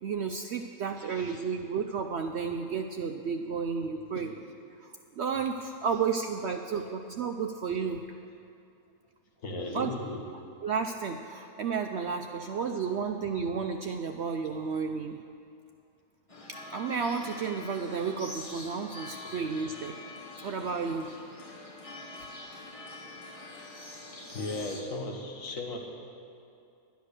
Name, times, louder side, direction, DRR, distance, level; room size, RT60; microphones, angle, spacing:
voice 1, 0.0-4.3 5.2-8.1 9.7-9.9 10.6-15.2 16.5-20.0 20.4-21.1, right 5 dB, 80° right, 5 dB, 0.6 m, -32 dB
voice 2, 1.0-1.5 4.1-4.2 5.8-5.9 6.3-6.6 6.8-6.9 9.4-10.2 14.4-14.6 19.2-19.4 24.3-25.8, left 2 dB, 55° left, 0 dB, 1.8 m, -37 dB
sound 1, 16.3-24.8, left 2 dB, 25° left, 1.1 m, -45 dB
10.5 x 10.0 x 6.6 m, 2.6 s
omnidirectional pair, 1.7 m